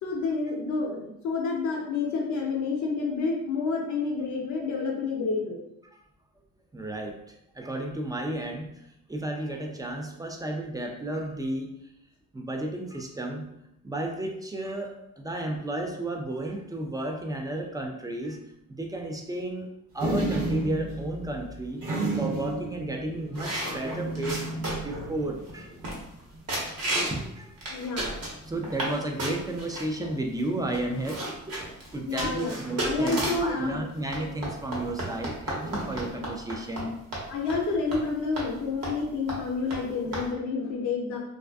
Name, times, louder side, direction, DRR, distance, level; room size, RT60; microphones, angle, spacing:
voice 1, 0.0-5.6 23.0-23.2 23.6-24.9 27.7-28.1 32.1-32.5 32.8-33.8 37.3-41.2, left 4 dB, 70° left, 0 dB, 0.6 m, -29 dB
voice 2, 6.7-11.7 12.3-13.5 13.8-18.4 18.7-19.7 19.9-24.4 24.8-25.7 27.1-27.6 28.5-31.6 31.9-37.4, right 1 dB, 15° right, 2 dB, 0.3 m, -33 dB
sound 1, 20.0-26.0 26.3-26.4 26.6-27.1 28.0-28.6 30.0-30.5 32.1-33.4 35.6-36.1, right 2 dB, 80° right, 1.1 m, -34 dB
sound 2, 23.3-25.0 25.5-25.6 25.8-26.2 26.5-27.2 27.6-28.9 29.2-29.8 30.4-30.5 30.7-33.5 34.1-36.8 37.1-37.2 37.5-37.6 37.9-38.0 38.4-38.5 38.8-39.0 39.3-39.4 39.7-39.8 40.1-40.2, right 1 dB, 55° right, 1.0 m, -32 dB
2.4 x 2.3 x 2.2 m, 0.79 s
cardioid pair, 90°, 30 cm